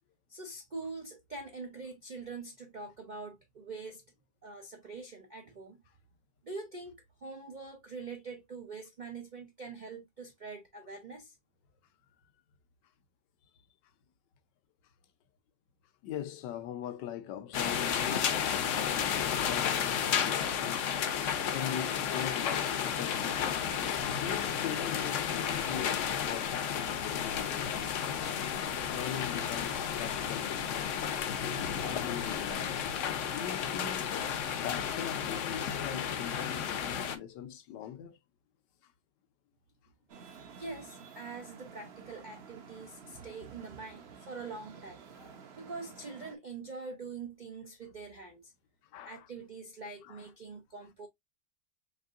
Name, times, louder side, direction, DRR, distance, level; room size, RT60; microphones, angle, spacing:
voice 1, 0.3-4.0 4.4-5.8 6.4-6.9 7.2-11.4 40.6-45.1 45.6-48.5 49.0-51.1, right 4 dB, 70° right, 0.4 m, -44 dB
voice 2, 16.0-21.0 21.5-23.5 24.1-28.1 28.9-30.9 31.8-34.1 34.6-38.2 45.2-45.3 48.9-49.3 50.0-50.3, left 10 dB, 85° left, 1.4 m, -41 dB
sound 1, 17.5-37.2, left 8 dB, 60° left, 0.8 m, -32 dB
Traffic noise roadway noise, 40.1-46.4, right 6 dB, 50° right, 0.8 m, -51 dB
4.7 x 3.5 x 2.4 m
omnidirectional pair, 1.9 m